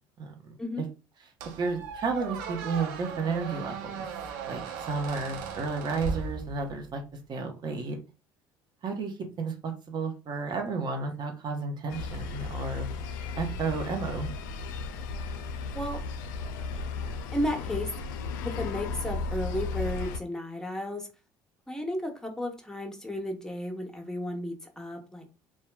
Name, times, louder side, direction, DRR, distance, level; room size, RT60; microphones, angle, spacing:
voice 1, 0.2-0.9 1.6-4.1 4.5-7.0 7.3-8.0 8.8-13.0 13.4-14.3, right 4 dB, 45° right, 0.8 m, -32 dB
Squeak, 1.4-6.9, right 5 dB, 85° right, 0.5 m, -37 dB
sound 1, 11.9-20.2, left 4 dB, 85° left, 0.4 m, -35 dB
voice 2, 17.3-17.9 18.4-21.1 21.7-25.2, left 1 dB, 5° left, 0.9 m, -33 dB
2.8 x 2.2 x 2.2 m
hypercardioid pair, 70°, 10 cm